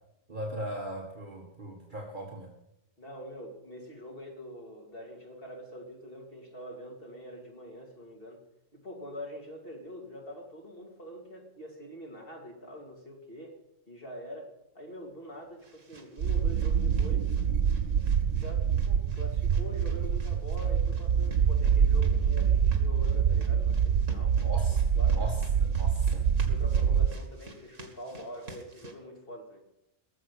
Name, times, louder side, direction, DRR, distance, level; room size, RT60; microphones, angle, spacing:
voice 1, 0.3-2.5 24.4-24.8 25.1-26.3, right 1 dB, 40° right, -1 dB, 1.8 m, -38 dB
voice 2, 3.0-8.4 8.7-13.6 13.9-17.3 18.3-24.4 24.7-25.2 26.4-29.6, equal, 45° left, 0 dB, 3.1 m, -44 dB
sound 1, 14.9-28.9, right 2 dB, 75° right, 2.4 m, -51 dB
sound 2, 16.2-27.1, right 7 dB, 55° right, 0.7 m, -25 dB
18.5 x 7.4 x 8.4 m, 0.85 s
omnidirectional pair, 1.3 m